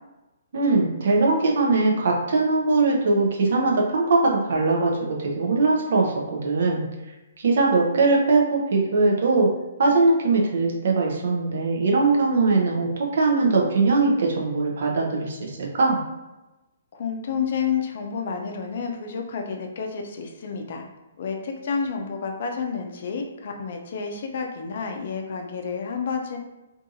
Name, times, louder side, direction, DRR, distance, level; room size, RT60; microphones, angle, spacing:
voice 1, 0.5-6.9 7.4-9.5 9.8-16.0, right 3 dB, 60° right, -1 dB, 0.6 m, -21 dB
voice 2, 16.9-20.9 21.2-26.4, left 6 dB, 55° left, 3 dB, 0.4 m, -30 dB
2.6 x 2.6 x 2.5 m, 1.0 s
figure-of-eight pair, 130°, 0 cm